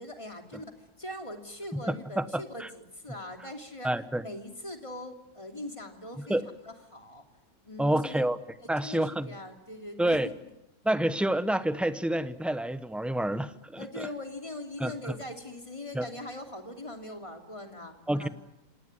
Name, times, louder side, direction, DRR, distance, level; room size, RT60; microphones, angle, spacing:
voice 1, 0.0-3.9 4.2-6.4 6.6-7.2 7.6-8.3 8.6-10.3 13.8-18.3, left 1 dB, 20° left, 4 dB, 2.9 m, -41 dB
voice 2, 1.7-2.7 3.8-4.2 6.3-6.4 7.8-8.4 8.7-9.3 10.0-10.3 10.8-14.1 14.8-15.1 15.9-16.0 18.1-18.3, right 1 dB, ahead, 12 dB, 0.7 m, -28 dB
26.5 x 18.5 x 9.6 m, 0.91 s
omnidirectional pair, 1.5 m